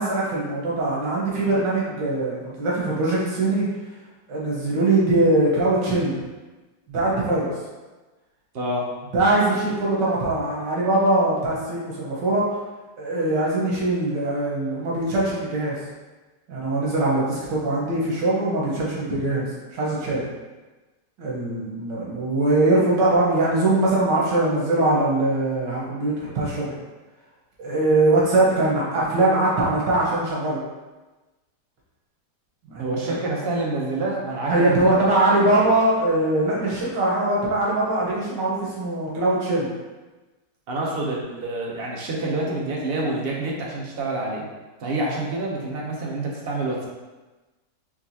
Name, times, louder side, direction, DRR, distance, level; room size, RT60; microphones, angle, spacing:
voice 1, 0.0-3.7 4.3-6.2 6.9-7.5 9.1-12.4 13.0-15.8 16.5-20.2 21.2-26.7 27.6-30.6 32.6-33.2 34.5-39.7, right 2 dB, 90° right, -6 dB, 1.8 m, -22 dB
voice 2, 8.5-8.8 32.8-35.0 40.7-44.4 44.8-46.9, right 2 dB, 55° right, -3 dB, 0.7 m, -27 dB
4.6 x 3.3 x 2.7 m, 1.2 s
omnidirectional pair, 1.9 m